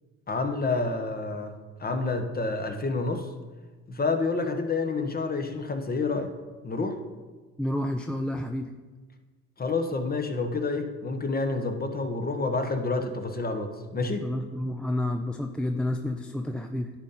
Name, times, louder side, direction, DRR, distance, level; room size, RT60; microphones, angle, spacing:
voice 1, 0.3-3.3 3.9-6.3 6.6-7.0 9.6-14.3, left 3 dB, 30° left, 6 dB, 1.1 m, -29 dB
voice 2, 7.6-8.7 14.2-16.9, left 1 dB, 5° left, 4 dB, 0.4 m, -30 dB
10.5 x 4.2 x 4.1 m, 1.3 s
supercardioid pair, 65°, 32 cm